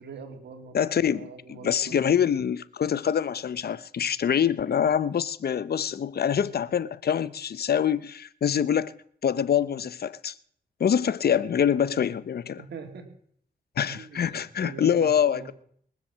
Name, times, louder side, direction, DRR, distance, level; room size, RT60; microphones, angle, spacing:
voice 1, 0.0-0.8 1.1-2.0 12.6-13.1 13.9-15.5, right 5 dB, 85° right, 2.7 m, -43 dB
voice 2, 0.7-1.3 1.6-8.9 9.2-10.3 10.8-12.6 13.8-15.5, left 8 dB, 65° left, 0.8 m, -25 dB
22.5 x 7.6 x 7.4 m
cardioid pair, 70°, 17 cm